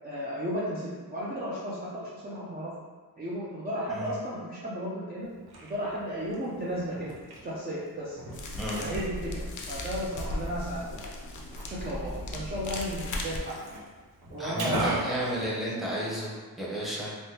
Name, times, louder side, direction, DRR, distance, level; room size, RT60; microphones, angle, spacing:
voice 1, 0.0-2.7 3.2-5.3 5.6-7.1 7.4-8.2 8.8-9.3 9.7-11.1 11.7-13.6 14.3-15.3, equal, 25° right, -7 dB, 0.5 m, -34 dB
voice 2, 3.9-4.2 8.5-8.9 14.4-17.2, equal, ahead, -6 dB, 0.8 m, -33 dB
Liquid, 5.2-16.2, right 1 dB, 75° right, 0.8 m, -40 dB
sound 1, 8.3-13.4, left 1 dB, 55° left, 0.5 m, -37 dB
3.4 x 2.1 x 2.8 m, 1.4 s
cardioid pair, 100°, 38 cm